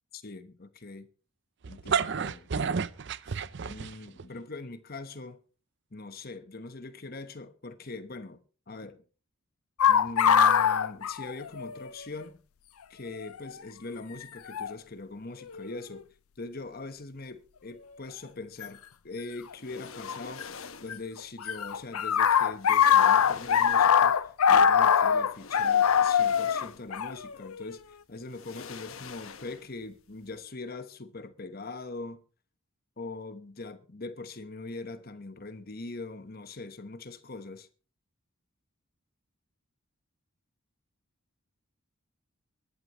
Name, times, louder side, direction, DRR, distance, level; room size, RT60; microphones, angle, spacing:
voice 1, 0.1-1.1 1.7-2.9 3.3-5.4 5.9-9.0 9.9-12.4 12.9-16.1 16.4-20.5 20.8-24.2 24.5-27.8 28.1-32.2 33.0-37.7, left 3 dB, 45° left, 1.1 m, -42 dB
sound 1, 1.6-4.2, right 6 dB, 55° right, 0.5 m, -30 dB
sound 2, 9.8-11.9 12.2-12.3 13.2-13.5 14.5-14.7 15.5-16.0 18.6-18.7 20.1-20.9 21.2-27.8, left 8 dB, 85° left, 0.6 m, -23 dB
sound 3, 19.5-21.1 22.1-22.2 22.6-24.2 25.3-27.0 27.3-27.5 28.3-29.9 30.1-30.3, left 5 dB, 70° left, 1.1 m, -45 dB
22.0 x 11.0 x 3.0 m
head